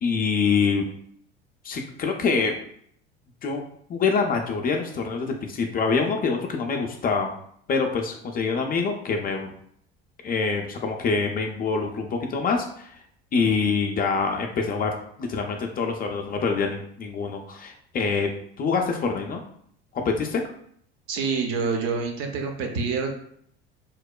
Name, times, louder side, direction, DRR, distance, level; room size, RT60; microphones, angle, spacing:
voice 1, 0.0-0.8 1.6-2.5 3.4-3.6 3.9-7.3 7.7-9.5 10.2-12.9 13.3-14.9 15.2-18.3 18.6-19.4 19.9-20.4, left 5 dB, 30° left, 2 dB, 0.4 m, -25 dB
voice 2, 21.1-23.1, right 5 dB, 55° right, 3 dB, 0.6 m, -27 dB
2.9 x 2.1 x 2.2 m, 0.65 s
hypercardioid pair, 70°, 30 cm